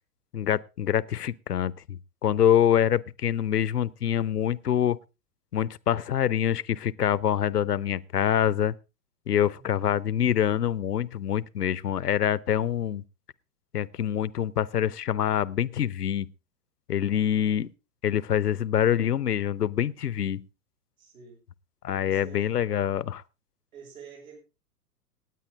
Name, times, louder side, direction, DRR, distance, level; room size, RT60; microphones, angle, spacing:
voice 1, 0.3-5.0 5.5-8.7 9.3-13.0 13.7-16.3 16.9-17.7 18.0-20.4 21.8-23.2, left 10 dB, 75° left, 0.7 m, -25 dB
voice 2, 9.5-9.9 17.1-17.7 21.0-21.4 22.0-22.5 23.7-24.4, right 5 dB, 60° right, 6.4 m, -48 dB
18.5 x 9.0 x 3.8 m
figure-of-eight pair, 105°, 47 cm